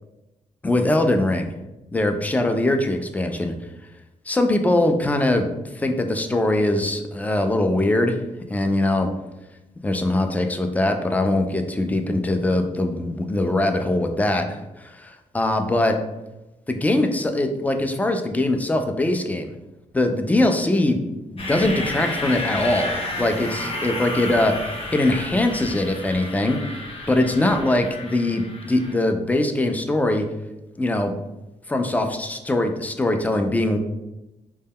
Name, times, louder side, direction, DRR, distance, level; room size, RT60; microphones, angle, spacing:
voice 1, 0.6-1.5 1.9-3.5 4.3-8.2 8.5-9.1 9.8-16.0 16.7-19.5 19.9-21.0 21.3-28.4 28.7-30.2 30.8-31.1 31.7-33.8, left 1 dB, 10° left, 5 dB, 0.3 m, -22 dB
sound 1, 21.4-28.9, left 1 dB, 45° left, 0.7 m, -31 dB
2.1 x 2.1 x 3.4 m, 0.98 s
cardioid pair, 80°, 13 cm